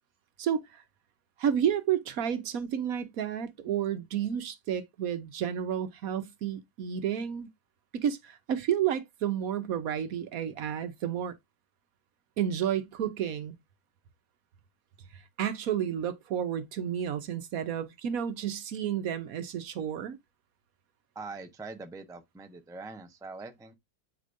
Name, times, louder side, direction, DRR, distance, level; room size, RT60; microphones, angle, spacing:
voice 1, 0.4-0.8 1.4-7.5 7.9-11.3 12.4-13.6 15.4-20.2, right 9 dB, 65° right, 1.1 m, -31 dB
voice 2, 21.1-23.7, right 3 dB, 5° right, 0.6 m, -43 dB
8.2 x 4.8 x 2.6 m
omnidirectional pair, 1.7 m